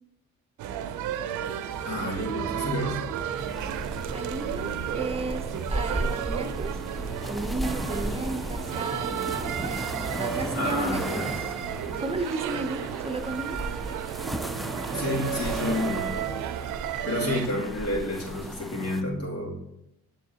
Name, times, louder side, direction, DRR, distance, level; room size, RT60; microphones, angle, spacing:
sound 1, 0.6-17.5, right 10 dB, 80° right, 0.5 m, -33 dB
voice 1, 1.8-3.0 10.5-11.3 14.9-16.4 17.0-19.6, left 1 dB, 55° left, -4 dB, 2.7 m, -30 dB
sound 2, 2.1-12.0, equal, 30° left, 2.1 m, -42 dB
sound 3, 3.4-19.0, right 1 dB, ahead, 0.4 m, -36 dB
voice 2, 4.1-6.8 7.3-9.3 10.2-11.4 11.9-13.6, right 2 dB, 20° right, 8 dB, 0.7 m, -34 dB
7.2 x 7.0 x 2.8 m, 0.85 s
cardioid pair, 90°, 30 cm